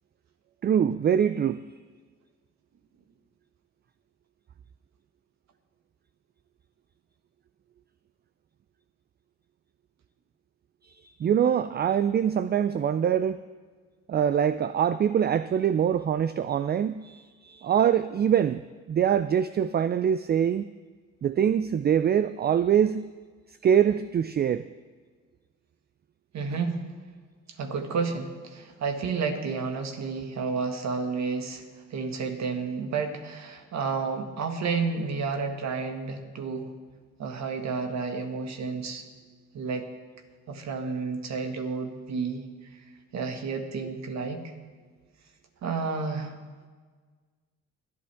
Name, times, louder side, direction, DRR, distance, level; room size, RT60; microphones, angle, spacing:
voice 1, 0.6-1.6 10.8-13.4 14.1-18.6 18.9-20.7 21.2-23.1 23.6-24.6, right 8 dB, 35° right, 13 dB, 0.4 m, -24 dB
voice 2, 26.3-26.8 27.6-31.6 31.9-36.7 37.2-39.0 39.5-39.9 40.5-42.5 42.7-42.8 43.1-44.5 45.6-46.4, right 4 dB, 65° right, 5 dB, 1.8 m, -31 dB
25.5 x 8.7 x 3.5 m, 1.5 s
cardioid pair, 90°, 30 cm